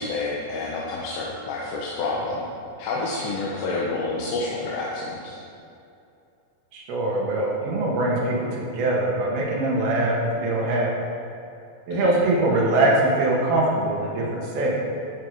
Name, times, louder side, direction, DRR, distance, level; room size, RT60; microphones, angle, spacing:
voice 1, 0.0-2.4 2.8-5.4 11.9-12.1, left 3 dB, 75° left, -4 dB, 2.8 m, -29 dB
voice 2, 6.7-10.9 11.9-14.8, right 2 dB, 65° right, -4 dB, 3.0 m, -22 dB
14.5 x 5.9 x 4.7 m, 2.6 s
omnidirectional pair, 5.5 m